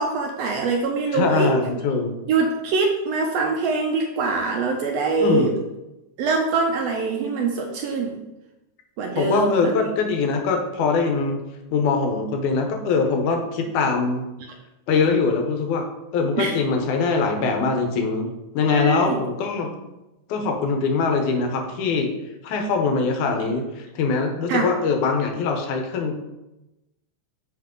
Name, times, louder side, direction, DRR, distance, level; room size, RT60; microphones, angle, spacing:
voice 1, 0.0-1.5 2.3-5.5 6.2-8.2 9.0-9.7 16.4-16.5 18.7-19.2 24.5-24.7, right 4 dB, 75° right, 2 dB, 1.5 m, -23 dB
voice 2, 1.1-2.2 5.2-5.5 9.1-11.4 11.7-14.2 14.9-15.8 16.1-19.7 20.3-22.1 22.4-26.3, left 4 dB, 90° left, 3 dB, 2.4 m, -22 dB
5.8 x 5.7 x 3.7 m, 0.98 s
omnidirectional pair, 3.4 m